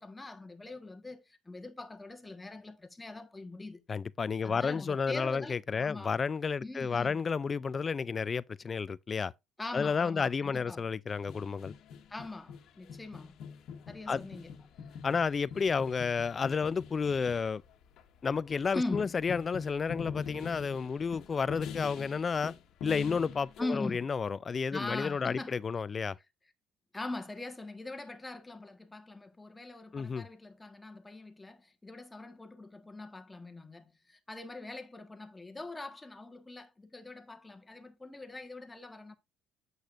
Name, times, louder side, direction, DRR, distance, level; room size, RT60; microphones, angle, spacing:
voice 1, 0.0-3.8 4.4-6.1 6.6-7.2 9.6-10.9 12.1-13.4 13.9-14.5 18.7-19.1 23.6-24.1 24.7-25.5 26.9-39.2, left 2 dB, 15° left, 1.3 m, -42 dB
voice 2, 3.9-9.3 9.7-11.7 14.1-14.2 15.0-17.6 18.2-22.5 22.8-26.2 29.9-30.3, left 5 dB, 30° left, 0.3 m, -31 dB
sound 1, 11.1-23.6, left 7 dB, 60° left, 1.3 m, -44 dB
8.4 x 7.9 x 2.5 m
cardioid pair, 100°, 0 cm